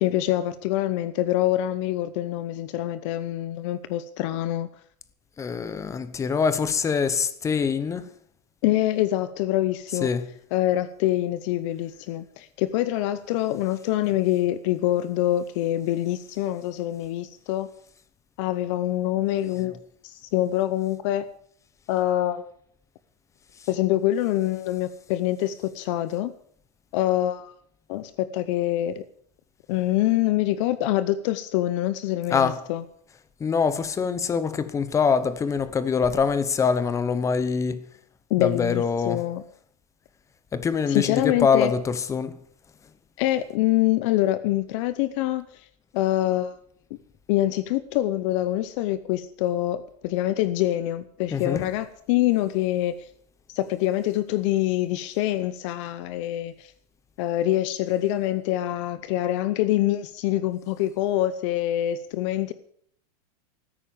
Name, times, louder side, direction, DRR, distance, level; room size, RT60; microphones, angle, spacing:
voice 1, 0.0-4.7 8.6-10.1 10.5-17.7 18.4-19.8 20.0-21.3 21.9-22.5 23.7-26.3 26.9-27.5 27.9-29.0 29.7-32.8 38.3-39.4 40.9-41.7 43.2-45.4 45.9-46.5 47.3-52.9 53.5-56.7 57.2-62.5, left 14 dB, 50° left, 0.8 m, -25 dB
voice 2, 5.4-8.1 10.0-10.3 32.3-32.6 33.4-37.9 38.4-39.2 40.5-42.4 51.3-51.7, left 6 dB, 15° left, 0.9 m, -24 dB
13.5 x 10.0 x 7.3 m
supercardioid pair, 145°, 20 cm